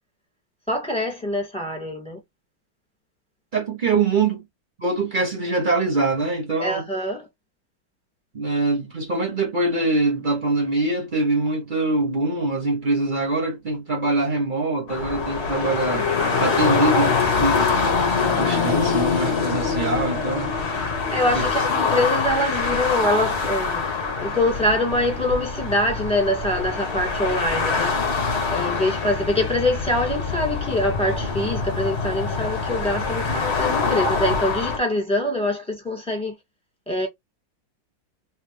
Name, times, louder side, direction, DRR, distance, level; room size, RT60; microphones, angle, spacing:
voice 1, 0.7-2.2 6.6-7.3 21.1-23.8 24.2-28.0 28.5-36.3 36.9-37.1, left 1 dB, 5° left, 1.6 m, -24 dB
voice 2, 3.5-4.4 4.8-6.8 8.3-16.1 16.4-17.9 18.2-20.9 21.3-21.5, right 3 dB, 75° right, 0.4 m, -24 dB
sound 1, 14.9-34.8, left 4 dB, 45° left, 0.9 m, -24 dB
3.2 x 3.2 x 3.1 m
omnidirectional pair, 2.3 m